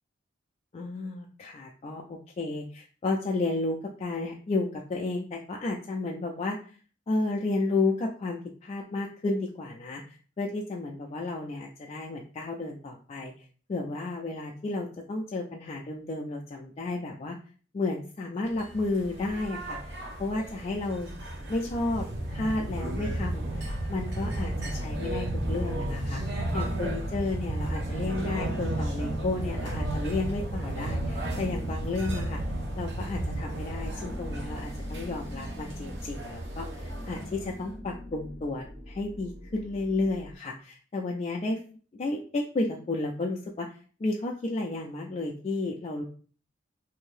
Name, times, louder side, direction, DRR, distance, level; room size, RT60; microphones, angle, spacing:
voice 1, 0.7-6.7 7.1-13.3 13.7-17.4 17.7-19.9 20.2-21.1 21.5-32.4 32.8-41.6 41.9-46.0, left 2 dB, 35° left, 0 dB, 0.3 m, -32 dB
sound 1, 18.5-37.7, right 1 dB, 65° right, 0.8 m, -33 dB
sound 2, 21.4-23.8 24.2-40.4, left 1 dB, 30° right, 1.0 m, -43 dB
2.7 x 2.6 x 3.2 m, 0.41 s
head